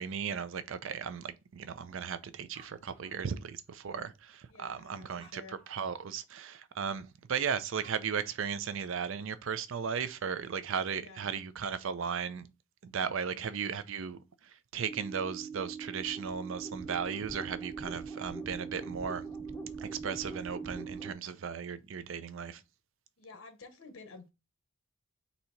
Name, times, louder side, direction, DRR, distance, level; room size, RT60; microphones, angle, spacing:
voice 1, 0.0-5.4 5.7-12.5 12.8-19.2 19.8-22.6, right 7 dB, 60° right, 0.4 m, -36 dB
Animal, 2.1-2.2 2.4-3.8 4.5-4.6 5.1-6.1 7.5-7.6 7.8-8.8, right 3 dB, 25° right, 0.9 m, -61 dB
voice 2, 4.4-5.6 10.8-11.5 13.3-13.5 23.2-24.3, left 3 dB, 65° left, 0.9 m, -52 dB
sound 1, 14.9-21.1, right 4 dB, 10° left, 0.6 m, -42 dB
4.0 x 2.8 x 4.4 m
head